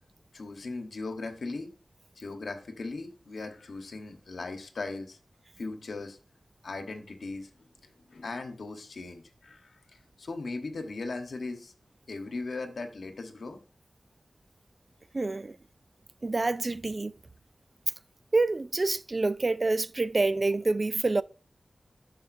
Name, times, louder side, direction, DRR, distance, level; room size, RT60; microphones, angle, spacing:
voice 1, 0.3-1.7 2.2-5.2 5.6-6.2 6.6-7.5 7.8-11.7 12.1-13.6, left 3 dB, 90° left, 1.1 m, -38 dB
voice 2, 15.1-15.6 16.2-17.1 18.3-21.2, right 3 dB, 45° right, 0.3 m, -27 dB
12.0 x 5.0 x 2.6 m
wide cardioid pair, 60°, 0 cm